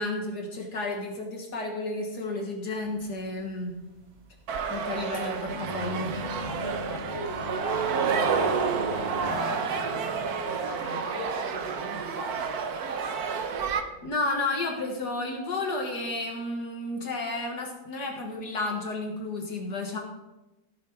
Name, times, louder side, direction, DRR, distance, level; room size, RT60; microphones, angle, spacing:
voice 1, 0.0-3.8 4.7-6.2 14.0-20.0, left 2 dB, 60° left, 1 dB, 2.1 m, -32 dB
sound 1, 2.8-3.3 3.5-9.3, left 1 dB, 35° right, 1.6 m, -40 dB
sound 2, 3.3-14.5 14.9-15.2, equal, 75° right, 3.2 m, -46 dB
sound 3, 4.5-13.8, right 6 dB, 60° right, 1.3 m, -30 dB
voice 2, 6.5-10.2 10.4-12.6, left 1 dB, 40° left, 1 dB, 1.8 m, -40 dB
15.5 x 7.1 x 4.7 m, 1.0 s
omnidirectional pair, 2.0 m